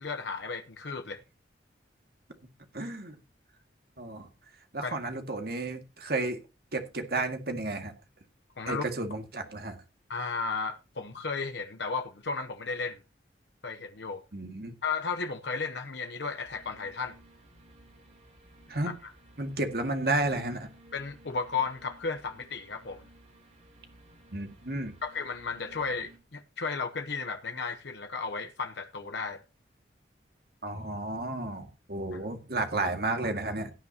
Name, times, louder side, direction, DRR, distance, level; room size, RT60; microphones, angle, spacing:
voice 1, 0.0-1.2 4.8-4.9 8.6-8.8 10.1-13.0 13.6-14.2 14.8-17.2 18.8-18.9 20.9-23.0 25.0-29.4, left 4 dB, 70° left, 0.8 m, -34 dB
voice 2, 2.7-3.2 4.0-4.3 4.7-6.4 6.7-7.9 8.7-9.8 14.3-14.7 18.7-18.9 19.4-20.7 24.3-25.0 30.6-33.7, right 2 dB, 55° right, 2.0 m, -32 dB
sound 1, 16.4-26.2, right 1 dB, 35° right, 3.3 m, -56 dB
17.0 x 9.6 x 2.9 m
head